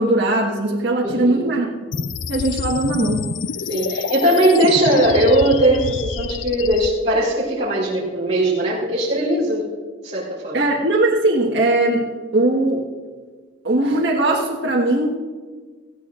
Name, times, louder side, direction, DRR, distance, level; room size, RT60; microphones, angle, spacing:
voice 1, 0.0-1.7 2.3-3.3 10.5-12.1 12.3-12.8 13.6-15.1, right 2 dB, 65° right, -5 dB, 1.6 m, -19 dB
voice 2, 1.0-1.5 3.7-9.6 10.0-10.6, right 1 dB, 35° right, -8 dB, 3.6 m, -19 dB
sound 1, 1.9-6.9, left 5 dB, 75° left, 0.5 m, -27 dB
18.5 x 15.0 x 2.5 m, 1.5 s
head